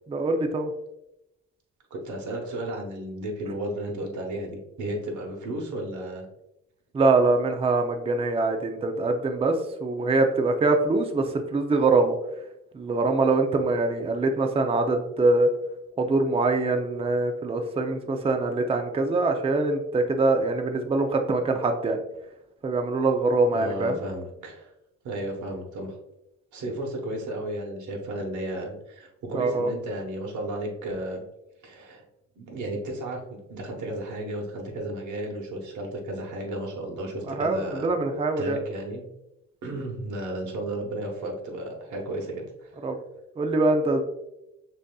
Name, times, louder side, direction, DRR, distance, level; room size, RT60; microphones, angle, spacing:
voice 1, 0.1-0.7 6.9-12.1 12.7-15.5 16.0-22.0 22.6-24.0 29.3-29.7 37.3-38.6 42.8-43.0 43.4-44.0, right 3 dB, 20° right, 5 dB, 0.4 m, -23 dB
voice 2, 1.9-6.3 23.5-24.7 25.0-26.0 26.5-31.2 31.6-32.0 32.4-33.2 33.5-37.9 38.4-39.0 39.6-42.8, right 1 dB, 75° right, 1 dB, 1.1 m, -33 dB
6.1 x 2.7 x 2.3 m, 0.88 s
cardioid pair, 90°, 30 cm